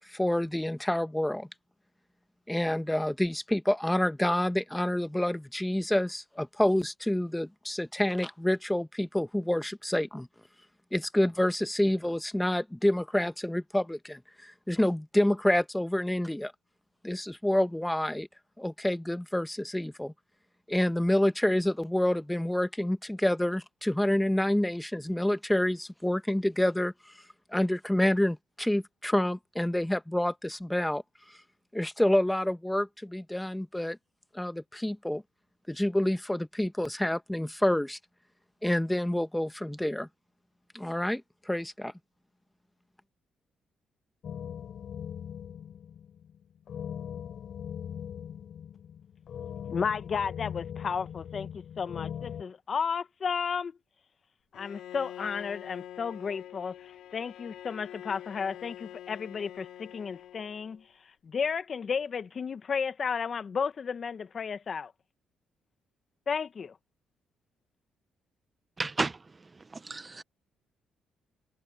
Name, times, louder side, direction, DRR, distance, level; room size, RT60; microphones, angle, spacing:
voice 1, 0.1-1.5 2.5-10.3 10.9-16.5 17.0-18.3 18.6-20.1 20.7-26.9 27.5-31.0 31.7-34.0 34.3-35.2 35.7-38.0 38.6-40.1 40.7-41.2 41.5-41.9, left 1 dB, 5° left, 1.3 m, -28 dB
sound 1, 44.2-52.4, left 9 dB, 65° left, 3.3 m, -40 dB
voice 2, 49.7-53.7 54.5-56.8 57.1-60.8 61.2-64.9 66.3-66.7, left 6 dB, 45° left, 1.3 m, -33 dB
Bowed string instrument, 54.5-60.8, left 12 dB, 80° left, 3.8 m, -46 dB
voice 3, 68.8-69.1 69.9-70.2, right 3 dB, 25° right, 0.7 m, -31 dB
cardioid pair, 90°, 0 cm